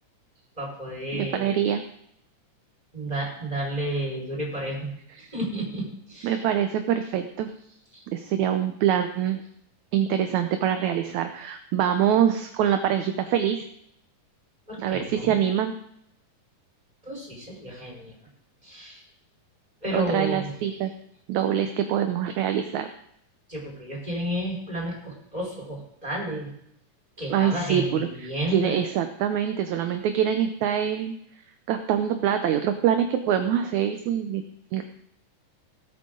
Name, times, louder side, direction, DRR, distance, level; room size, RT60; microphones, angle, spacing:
voice 1, 0.6-1.5 2.9-4.9 5.3-6.4 7.9-8.0 14.7-15.3 17.0-18.1 18.6-19.0 19.8-20.5 23.5-26.5 27.2-28.8, right 1 dB, 10° right, -3 dB, 5.0 m, -31 dB
voice 2, 1.1-1.8 6.2-7.5 8.1-9.4 9.9-13.6 14.8-15.7 19.9-20.9 21.3-22.9 27.3-31.2 31.7-34.4 34.7-34.8, right 9 dB, 70° right, 7 dB, 1.9 m, -24 dB
19.0 x 8.6 x 3.8 m, 0.73 s
omnidirectional pair, 3.8 m